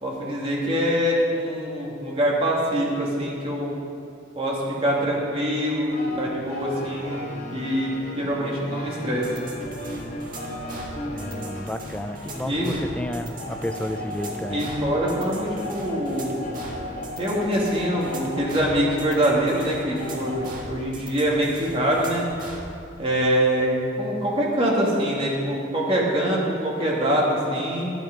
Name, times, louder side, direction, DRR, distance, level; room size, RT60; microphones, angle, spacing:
voice 1, 0.0-3.7 4.4-9.3 12.4-12.7 14.5-16.4 17.2-22.3 23.0-27.9, equal, 30° right, -4 dB, 2.3 m, -24 dB
sound 1, 5.8-20.5, left 1 dB, 45° left, 3.3 m, -36 dB
sound 2, 9.2-22.7, right 2 dB, 45° right, 1.6 m, -40 dB
voice 2, 11.1-14.7, left 1 dB, 5° left, 7 dB, 0.5 m, -32 dB
12.5 x 9.0 x 5.3 m, 2.6 s
head